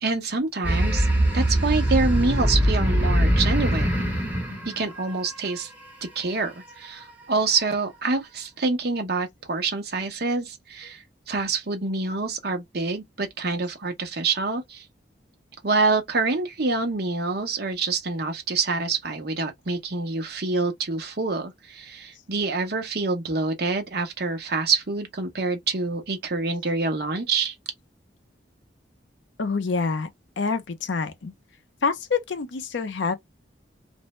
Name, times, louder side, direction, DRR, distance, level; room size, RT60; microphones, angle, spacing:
voice 1, 0.0-1.1 1.3-4.0 4.6-5.7 6.0-14.8 15.6-27.5, right 3 dB, 55° right, 0.8 m, -26 dB
sound 1, 0.6-5.6, equal, 10° right, 0.9 m, -22 dB
voice 2, 29.4-30.1 30.4-31.3 31.8-33.1, left 4 dB, 75° left, 0.6 m, -26 dB
2.6 x 2.1 x 3.0 m
head